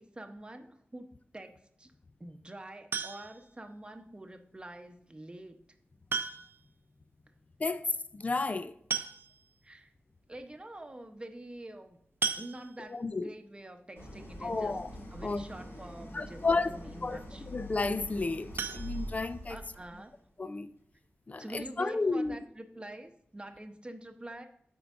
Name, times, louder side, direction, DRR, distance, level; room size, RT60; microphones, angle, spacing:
voice 1, 0.0-1.9 2.2-5.6 9.6-9.9 10.3-12.0 12.4-14.8 15.1-17.4 19.5-20.1 21.4-24.5, right 1 dB, 25° right, 0.9 m, -46 dB
sound 1, 2.9-3.5 5.0-5.1 6.1-6.7 7.0-7.1 7.4-7.5 8.5-8.6 8.9-9.6 10.2-10.3 10.6-10.8 12.2-13.0 18.5-19.7 20.1-20.2 20.6-20.7 21.1-21.2, right 5 dB, 70° right, 0.6 m, -36 dB
voice 2, 7.6-8.7 12.8-13.3 14.4-14.9 15.2-15.4 16.1-17.2 17.5-19.6 20.4-20.7 21.3-22.4, left 3 dB, 35° left, 0.4 m, -32 dB
Idling, 14.0-20.0, equal, 80° left, 2.8 m, -44 dB
13.5 x 4.6 x 2.5 m
wide cardioid pair, 100°, 4 cm